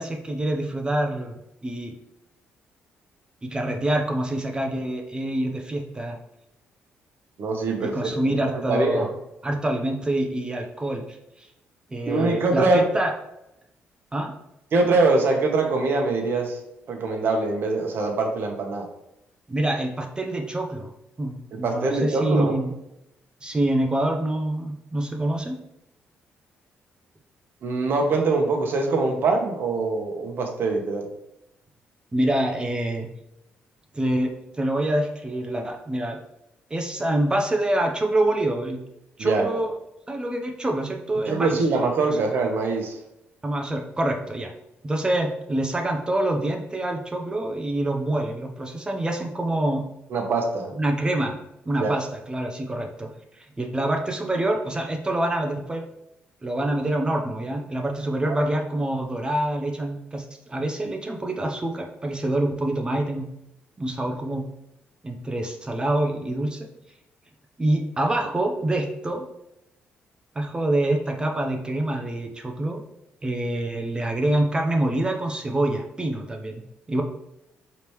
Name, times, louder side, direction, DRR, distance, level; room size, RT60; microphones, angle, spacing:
voice 1, 0.0-1.3 1.6-1.9 3.4-6.2 7.8-9.1 9.4-11.5 11.9-13.1 14.1-14.3 19.5-20.9 21.2-22.7 23.4-25.6 32.1-33.1 33.9-36.2 36.7-38.8 39.2-39.7 40.1-41.6 42.1-42.2 43.4-44.5 44.8-49.8 50.8-51.4 51.7-55.8 56.4-63.3 63.8-64.5 65.0-66.7 67.6-69.2 70.3-72.8 73.2-77.0, right 1 dB, 20° right, 3 dB, 0.8 m, -26 dB
voice 2, 7.4-8.3 8.7-9.0 12.1-12.9 14.7-16.6 16.9-18.9 21.6-22.5 27.6-31.1 39.2-39.5 41.3-43.0 50.1-50.7 51.8-52.0 58.3-58.4, right 3 dB, 60° right, 3 dB, 1.1 m, -23 dB
4.9 x 3.4 x 3.1 m, 0.84 s
cardioid pair, 80°, 4 cm